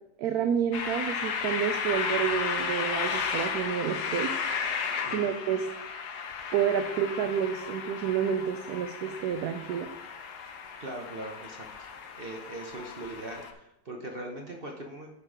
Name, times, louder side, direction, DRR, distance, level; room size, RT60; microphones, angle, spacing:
voice 1, 0.2-4.3 5.1-5.7 6.5-9.9, right 8 dB, 70° right, 7 dB, 1.1 m, -29 dB
sound 1, 0.7-13.5, left 6 dB, 70° left, 1.4 m, -34 dB
voice 2, 5.0-5.3 10.8-11.9 12.2-15.1, right 1 dB, 40° right, 2 dB, 1.0 m, -40 dB
11.0 x 4.6 x 4.8 m, 0.84 s
omnidirectional pair, 1.8 m